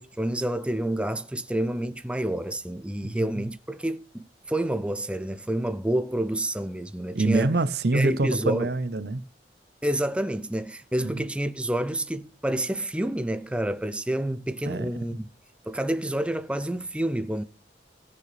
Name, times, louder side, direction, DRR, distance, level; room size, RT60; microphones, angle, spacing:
voice 1, 0.0-7.6 7.9-8.7 9.8-15.3 15.7-17.4, right 1 dB, 5° right, 0.4 m, -28 dB
voice 2, 3.0-3.5 7.1-9.2 11.0-11.2 14.7-14.9, right 2 dB, 60° right, 0.7 m, -26 dB
17.5 x 6.7 x 3.2 m
head